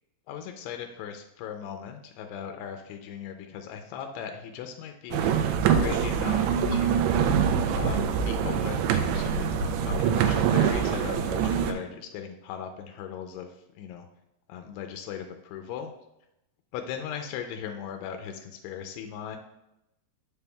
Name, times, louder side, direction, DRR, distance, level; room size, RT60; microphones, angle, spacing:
voice 1, 0.3-6.4 6.7-7.2 7.7-14.1 14.5-15.9 16.7-19.4, left 8 dB, 90° left, 4 dB, 2.6 m, -38 dB
sound 1, 5.1-11.7, right 7 dB, 85° right, 2.5 m, -24 dB
6.9 x 6.5 x 2.3 m, 0.86 s
omnidirectional pair, 4.6 m